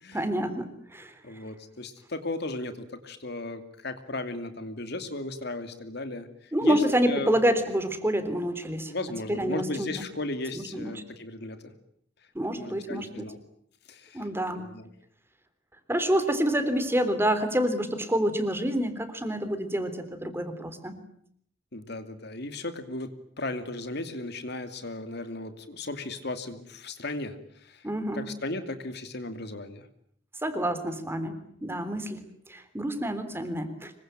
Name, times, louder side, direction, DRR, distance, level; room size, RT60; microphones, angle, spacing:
voice 1, 0.1-1.1 6.5-8.9 9.3-9.9 10.5-10.9 12.4-13.3 14.1-14.7 15.9-21.0 27.8-28.3 30.4-33.9, equal, 15° right, 9 dB, 3.5 m, -28 dB
voice 2, 1.2-7.3 8.9-11.7 12.5-13.4 13.9-14.3 14.6-14.9 21.7-27.9 28.1-29.9, left 2 dB, 60° left, 9 dB, 2.7 m, -36 dB
26.0 x 23.5 x 9.0 m, 0.67 s
head